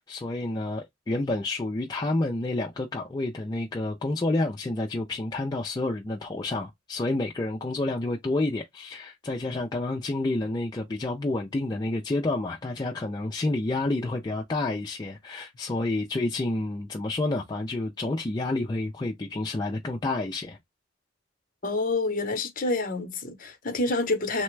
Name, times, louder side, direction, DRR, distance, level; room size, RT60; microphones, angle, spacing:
voice 1, 0.0-20.6, left 2 dB, 20° left, 0.3 m, -29 dB
voice 2, 21.6-24.4, left 2 dB, 40° left, 0.7 m, -28 dB
3.2 x 2.1 x 3.1 m
head